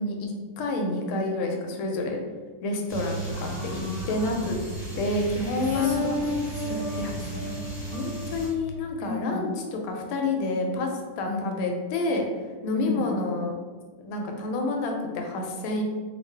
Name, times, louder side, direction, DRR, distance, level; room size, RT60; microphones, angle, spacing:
voice 1, 0.0-2.2 2.6-4.6 4.9-6.2 7.0-7.1 7.9-9.5 9.8-12.3 12.6-13.5 14.0-15.8, left 2 dB, 90° left, 2 dB, 1.5 m, -28 dB
sound 1, 2.9-8.5, right 1 dB, 15° left, 1.0 m, -33 dB
voice 2, 3.3-4.4 5.6-7.8 9.0-9.4 11.2-11.7 12.7-13.1, left 2 dB, 65° left, -6 dB, 0.9 m, -34 dB
3.3 x 2.4 x 3.2 m, 1.4 s
omnidirectional pair, 2.3 m